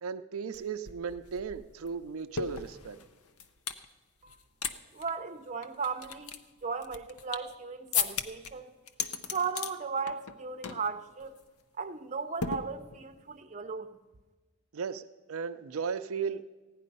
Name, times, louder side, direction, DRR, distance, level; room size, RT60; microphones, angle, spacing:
voice 1, 0.0-3.0 14.7-16.4, right 6 dB, 70° right, 0.5 m, -36 dB
sound 1, 0.5-0.6 0.9-3.8 4.3-4.7 5.0-5.1 5.6-7.5 7.9-8.5 8.9-9.7 10.1-10.4 10.6-10.9 11.2-11.4 12.4-13.2, left 6 dB, 80° left, 0.7 m, -35 dB
voice 2, 4.9-8.7 9.3-11.4 11.8-14.0, right 5 dB, 30° right, 0.6 m, -36 dB
15.5 x 10.0 x 5.4 m
head